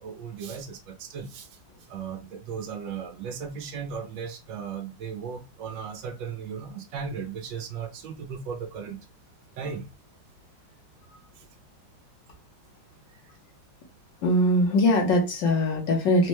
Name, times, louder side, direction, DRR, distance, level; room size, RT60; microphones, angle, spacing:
voice 1, 0.0-1.5 1.9-9.0 9.6-9.8 11.4-11.5, right 6 dB, 75° right, 1.3 m, -36 dB
voice 2, 14.2-16.3, left 1 dB, 70° left, 1.6 m, -21 dB
4.2 x 2.2 x 3.0 m
omnidirectional pair, 2.1 m